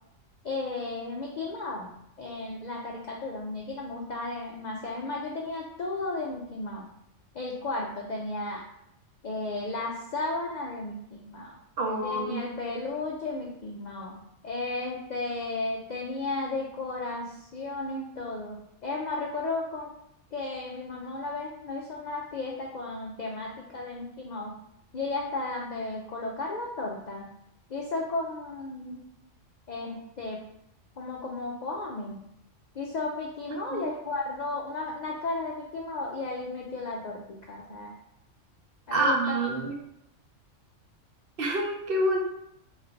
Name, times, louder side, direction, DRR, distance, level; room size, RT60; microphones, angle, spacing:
voice 1, 0.4-1.9 2.2-6.9 7.3-8.6 9.2-11.6 12.0-14.1 14.4-19.9 20.3-24.5 24.9-27.2 27.7-29.0 29.7-30.4 31.0-32.2 32.7-37.2 37.5-37.9 38.9-39.3, left 2 dB, 65° left, -1 dB, 0.4 m, -34 dB
voice 2, 11.8-12.5 33.7-33.9 38.9-39.8 41.4-42.2, right 1 dB, 55° right, 0 dB, 0.7 m, -27 dB
3.1 x 2.5 x 4.3 m, 0.78 s
omnidirectional pair, 1.3 m